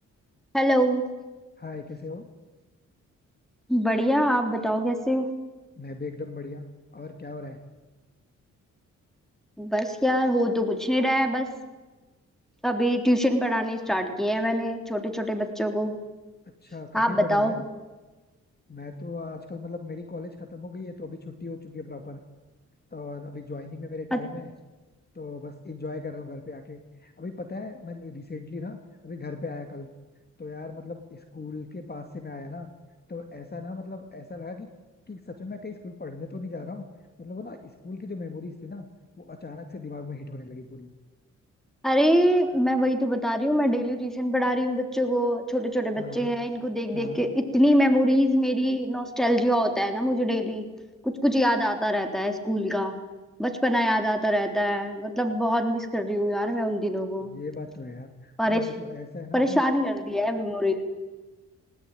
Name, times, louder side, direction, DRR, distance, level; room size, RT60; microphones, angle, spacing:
voice 1, 0.5-1.0 3.7-5.3 9.6-11.5 12.6-15.9 16.9-17.5 24.1-24.2 41.8-47.3 47.5-50.6 51.0-52.9 53.4-57.3 58.4-58.6 59.3-60.8, equal, ahead, 5 dB, 3.5 m, -24 dB
voice 2, 1.6-2.2 5.8-6.7 6.9-7.6 16.6-17.6 18.7-22.2 22.9-24.5 25.1-28.8 29.0-29.9 30.4-32.7 33.1-34.7 35.1-36.9 37.2-38.9 39.2-40.9 46.0-46.3 46.9-47.2 57.2-59.6, left 3 dB, 30° left, 6 dB, 2.2 m, -38 dB
19.5 x 19.0 x 9.2 m, 1.2 s
cardioid pair, 70°, 31 cm